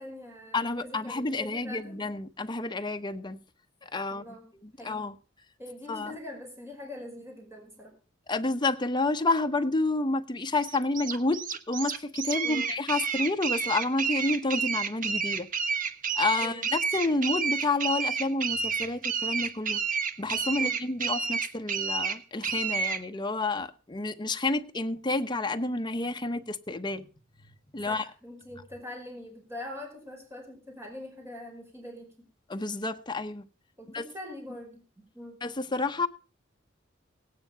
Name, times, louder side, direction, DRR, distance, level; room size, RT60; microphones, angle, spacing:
voice 1, 0.0-2.0 4.1-5.1 5.6-7.9 12.4-12.7 16.4-16.6 20.6-20.8 27.8-32.3 33.8-34.8 35.1-35.4, left 1 dB, 15° right, 5.0 m, -43 dB
voice 2, 0.5-3.4 3.8-4.2 4.8-5.1 5.9-6.1 8.3-15.5 16.1-19.8 20.2-27.1 27.7-28.0 32.5-33.4 33.9-34.0 35.4-36.1, left 2 dB, 25° left, 0.9 m, -29 dB
sound 1, 10.6-23.0, right 6 dB, 45° right, 1.1 m, -30 dB
17.5 x 9.6 x 5.7 m
head